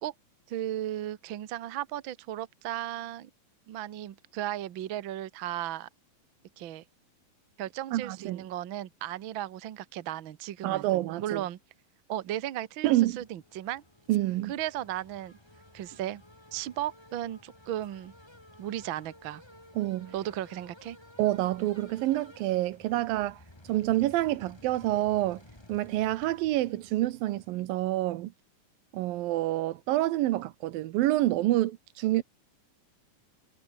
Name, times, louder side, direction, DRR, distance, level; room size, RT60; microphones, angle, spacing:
voice 1, 0.5-3.3 3.7-5.9 6.6-6.8 7.6-10.9 11.2-11.6 12.1-13.8 14.5-15.4 15.7-16.2 16.5-18.1 18.6-19.4 20.1-21.0, right 12 dB, 70° right, 1.1 m, -35 dB
voice 2, 7.9-8.4 10.6-11.4 12.8-13.2 14.1-14.5 19.8-20.1 21.2-23.4 23.7-25.4 25.7-28.3 28.9-32.2, right 15 dB, 90° right, 2.7 m, -27 dB
sound 1, 13.1-27.6, left 1 dB, 5° left, 3.2 m, -55 dB
omnidirectional pair, 4.0 m